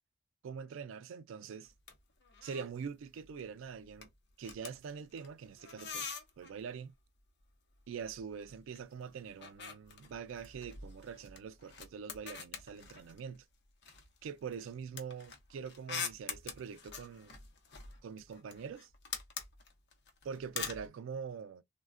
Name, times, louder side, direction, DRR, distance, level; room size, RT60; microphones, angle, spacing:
voice 1, 0.4-1.7 2.4-4.1 4.4-6.9 7.9-13.4 14.2-17.4 18.0-18.9 20.2-21.6, right 6 dB, 80° right, 0.3 m, -44 dB
sound 1, 1.7-2.8 3.1-3.4 3.7-6.6 7.8-8.8 9.1-13.4 13.8-20.9, left 6 dB, 60° left, 0.7 m, -45 dB
3.2 x 2.2 x 2.4 m
head